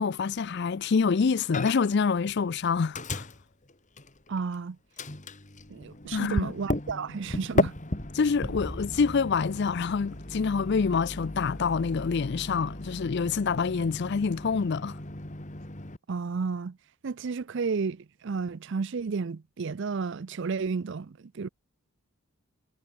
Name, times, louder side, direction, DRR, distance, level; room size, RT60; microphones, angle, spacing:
voice 1, 0.0-3.3 6.1-6.5 8.1-15.0, left 5 dB, 50° left, 0.4 m, -26 dB
Microwave oven, 1.5-2.0 2.3-4.6 5.0-16.0, left 2 dB, 35° left, 2.2 m, -35 dB
voice 2, 4.3-4.8 5.7-7.7 16.1-16.8 17.0-21.5, right 5 dB, 55° right, 0.5 m, -32 dB
sound 1, 8.4-11.0, equal, 15° right, 1.8 m, -41 dB
head